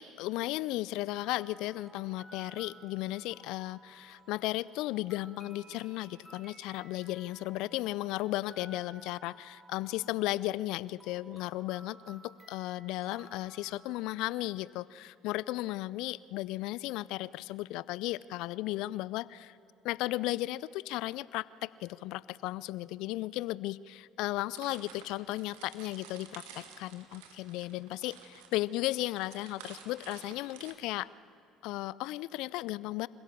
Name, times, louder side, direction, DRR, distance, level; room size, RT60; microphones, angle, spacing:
voice 1, 0.0-19.6 19.8-31.1 31.6-33.1, left 17 dB, 65° left, 21 dB, 0.4 m, -35 dB
sound 1, 1.1-14.2, right 2 dB, 10° right, 6.5 m, -56 dB
sound 2, 24.6-30.7, right 7 dB, 75° right, 2.0 m, -52 dB
27.0 x 16.0 x 7.0 m, 2.8 s
hypercardioid pair, 65°, 0 cm